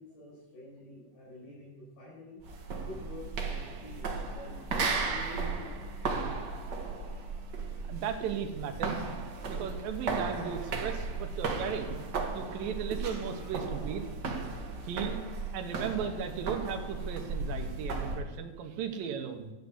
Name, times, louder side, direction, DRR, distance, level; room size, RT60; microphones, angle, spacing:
voice 1, 0.0-2.4 2.9-6.3 13.3-13.8, equal, 80° left, -9 dB, 7.6 m, -48 dB
sound 1, 2.4-18.2, right 4 dB, 45° right, 1.5 m, -35 dB
voice 2, 7.9-9.0 9.5-12.0 12.3-14.1 14.8-15.2 15.5-19.5, right 7 dB, 90° right, 5 dB, 2.9 m, -36 dB
13.5 x 8.5 x 8.1 m, 1.1 s
omnidirectional pair, 3.9 m